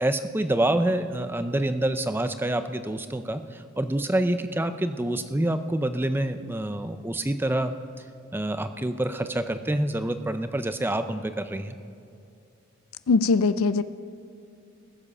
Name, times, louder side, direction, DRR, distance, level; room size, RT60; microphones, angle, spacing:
voice 1, 0.0-7.7 8.3-11.8, right 1 dB, 10° right, 9 dB, 0.5 m, -27 dB
voice 2, 13.1-13.8, left 4 dB, 75° left, 13 dB, 0.4 m, -21 dB
20.0 x 7.5 x 5.5 m, 2.6 s
head